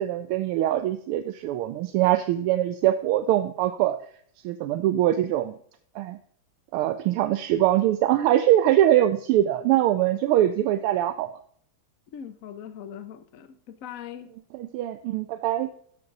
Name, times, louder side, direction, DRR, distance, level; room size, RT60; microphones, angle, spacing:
voice 1, 0.0-4.0 4.4-5.5 5.9-6.2 6.7-11.3 14.5-15.7, right 13 dB, 85° right, 1.5 m, -23 dB
voice 2, 12.1-14.3, left 9 dB, 65° left, 0.8 m, -40 dB
14.0 x 5.8 x 3.9 m
omnidirectional pair, 2.4 m